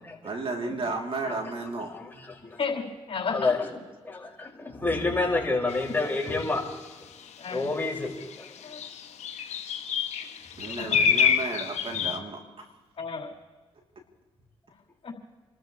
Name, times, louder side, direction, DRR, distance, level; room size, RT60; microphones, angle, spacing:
voice 1, 0.2-1.9 9.5-9.7 10.6-12.7, right 3 dB, 50° right, 3.0 m, -33 dB
voice 2, 2.6-3.5 7.4-7.9 8.6-9.1 10.8-11.3 13.0-13.3 15.0-15.1, left 5 dB, 50° left, 5.1 m, -34 dB
voice 3, 4.0-6.6 7.5-8.1, left 3 dB, 15° left, 5.3 m, -28 dB
sound 1, 5.7-5.8 6.4-6.7 7.6-7.7 8.0-12.2, left 7 dB, 70° left, 1.2 m, -27 dB
30.0 x 13.5 x 3.2 m
cardioid pair, 65°, 12 cm